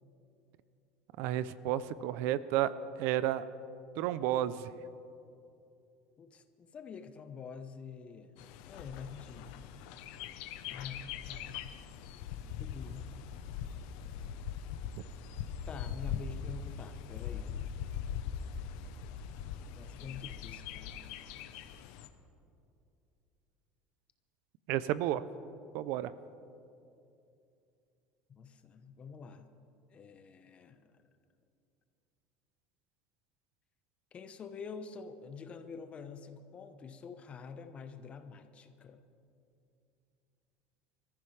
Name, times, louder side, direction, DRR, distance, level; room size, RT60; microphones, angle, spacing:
voice 1, 1.2-2.7 3.0-3.4 4.0-4.7 24.7-25.2 25.7-26.1, right 13 dB, 65° right, 16 dB, 0.5 m, -31 dB
voice 2, 6.2-8.4 8.7-9.6 10.7-11.7 12.6-13.1 15.7-17.6 19.7-21.1 28.3-29.5 29.9-30.9 34.1-39.0, left 5 dB, 30° left, 8 dB, 1.0 m, -47 dB
Bird, 8.4-22.1, left 8 dB, 75° left, 0.9 m, -41 dB
27.0 x 14.5 x 3.3 m, 2.6 s
cardioid pair, 140°, 4 cm